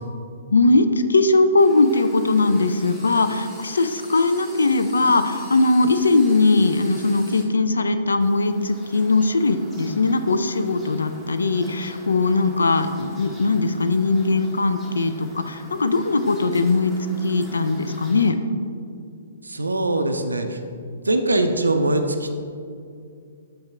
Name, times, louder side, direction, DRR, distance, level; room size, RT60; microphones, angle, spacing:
voice 1, 0.5-16.9 17.2-18.4, left 3 dB, 70° left, 10 dB, 0.3 m, -20 dB
sound 1, 1.6-7.4 8.2-18.3, equal, 5° left, 1.0 m, -44 dB
voice 2, 19.4-20.6 21.0-22.4, right 2 dB, 75° right, 6 dB, 0.4 m, -22 dB
5.6 x 5.4 x 3.3 m, 2.4 s
figure-of-eight pair, 115°, 0 cm